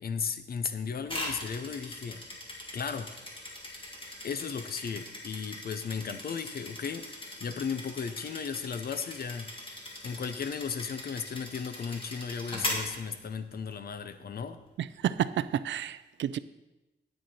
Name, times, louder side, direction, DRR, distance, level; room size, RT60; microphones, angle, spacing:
voice 1, 0.0-2.2 2.7-3.1 4.2-14.6, left 6 dB, 55° left, 11 dB, 0.7 m, -36 dB
sound 1, 1.0-13.7, left 1 dB, 30° left, 2.0 m, -40 dB
voice 2, 14.8-16.4, right 10 dB, 90° right, 16 dB, 0.4 m, -30 dB
9.1 x 9.1 x 4.3 m, 1.0 s
wide cardioid pair, 140°, 19 cm